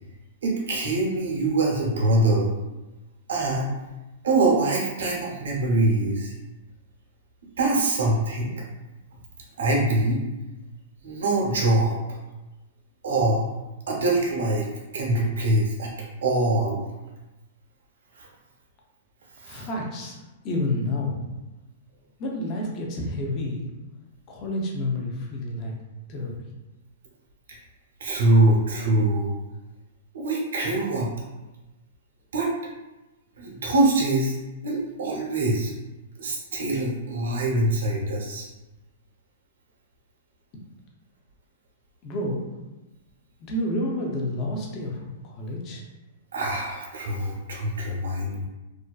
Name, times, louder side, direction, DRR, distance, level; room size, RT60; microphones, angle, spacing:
voice 1, 0.4-2.5 3.3-3.7 4.2-6.3 7.6-8.5 9.6-10.2 11.0-12.0 13.0-13.5 13.9-14.7 14.9-15.9 16.2-16.8 18.2-18.3 19.4-19.7 28.0-29.3 30.1-31.1 32.3-32.5 33.4-34.4 34.6-35.7 36.2-38.5 46.3-48.5, right 2 dB, 80° right, -2 dB, 0.7 m, -23 dB
voice 2, 19.4-20.2 20.4-21.2 22.2-23.6 24.3-25.7 26.1-26.3 42.0-42.4 43.4-45.8, left 1 dB, 35° left, -1 dB, 0.6 m, -29 dB
2.5 x 2.2 x 2.3 m, 1.1 s
hypercardioid pair, 130°, 0 cm